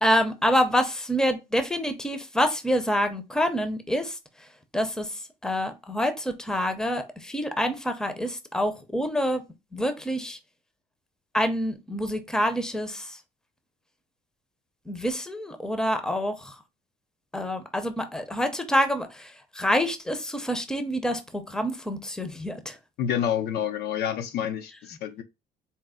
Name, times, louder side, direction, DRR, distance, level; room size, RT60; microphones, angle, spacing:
voice 1, 0.0-4.2 4.7-9.4 9.7-10.4 11.3-13.2 14.9-16.5 17.3-22.8, equal, 5° left, 0.6 m, -27 dB
voice 2, 23.0-25.2, left 9 dB, 70° left, 0.6 m, -28 dB
4.2 x 2.0 x 3.6 m
cardioid pair, 110°, 17 cm